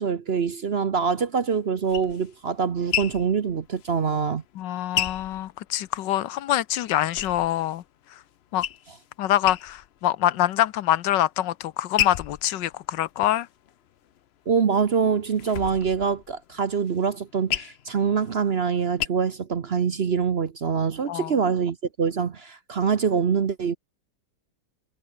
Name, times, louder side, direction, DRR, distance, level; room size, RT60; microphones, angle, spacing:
voice 1, 0.0-4.4 14.5-23.8, right 6 dB, 45° right, 0.9 m, -24 dB
sound 1, 1.5-6.2 6.6-7.9 8.2-9.1 9.4-10.0 10.4-11.0 11.5-14.2 14.7-19.0, left 10 dB, 70° left, 0.6 m, -33 dB
voice 2, 4.5-7.8 8.1-8.2 8.5-8.7 9.2-13.5 21.1-21.3, left 13 dB, 90° left, 1.5 m, -25 dB
omnidirectional pair, 1.9 m